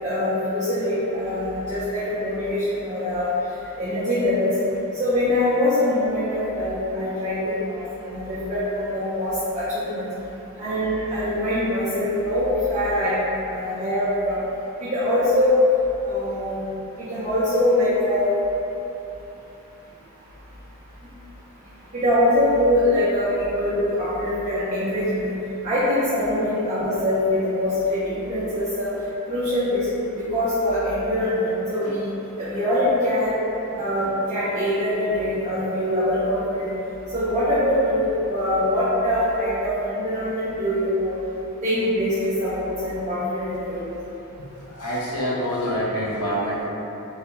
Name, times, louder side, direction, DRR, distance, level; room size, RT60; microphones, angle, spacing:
voice 1, 0.0-3.3 3.8-4.5 5.0-10.1 10.6-13.2 13.5-14.4 14.8-15.6 16.0-16.6 17.1-18.3 21.9-25.3 25.6-28.9 29.3-29.9 30.1-32.1 32.4-33.3 33.8-36.7 37.1-41.2 41.6-42.1 42.4-43.8, left 1 dB, 30° right, -13 dB, 0.4 m, -23 dB
voice 2, 44.7-46.7, equal, 80° left, -5 dB, 0.4 m, -26 dB
2.3 x 2.1 x 2.9 m, 3.0 s
head